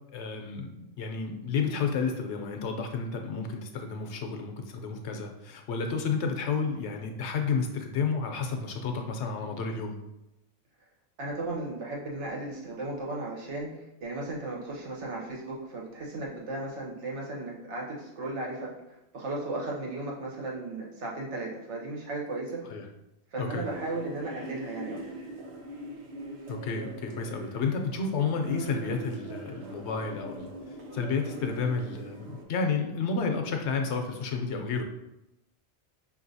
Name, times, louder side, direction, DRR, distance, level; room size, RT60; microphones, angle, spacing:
voice 1, 0.1-10.0 22.7-22.8 23.4-23.6 26.5-30.5 30.9-34.8, left 5 dB, 80° left, 4 dB, 0.9 m, -31 dB
voice 2, 11.2-22.6 23.3-25.0, right 2 dB, 85° right, -3 dB, 1.3 m, -35 dB
sound 1, 23.6-32.4, right 2 dB, 70° right, 1.0 m, -41 dB
5.2 x 2.7 x 2.6 m, 0.90 s
omnidirectional pair, 1.2 m